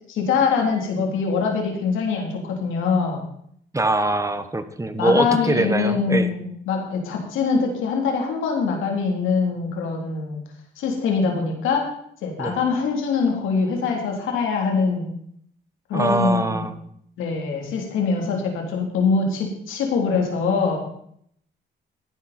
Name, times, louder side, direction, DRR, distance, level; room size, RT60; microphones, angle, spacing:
voice 1, 0.1-3.2 5.0-10.4 10.8-11.9 12.2-15.1 15.9-16.7 17.2-20.8, left 5 dB, 85° left, 1 dB, 3.4 m, -23 dB
voice 2, 3.7-6.3 12.4-12.5 15.9-16.8, right 2 dB, 15° right, 10 dB, 1.3 m, -22 dB
14.5 x 10.5 x 4.4 m, 0.67 s
cardioid pair, 90°, 20 cm